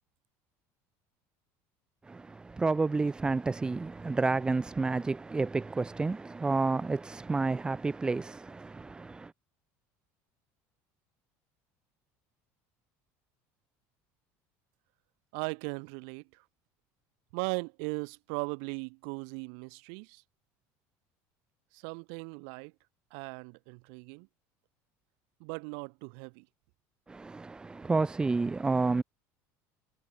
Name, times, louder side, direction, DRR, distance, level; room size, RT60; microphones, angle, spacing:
voice 1, 2.0-9.3 27.1-29.0, right 3 dB, 15° right, 4.5 m, -30 dB
voice 2, 15.3-16.4 17.3-20.2 21.7-22.7 23.1-24.3 25.4-26.5, right 40 dB or more, 75° right, 4.7 m, -38 dB
cardioid pair, 150°, 7 cm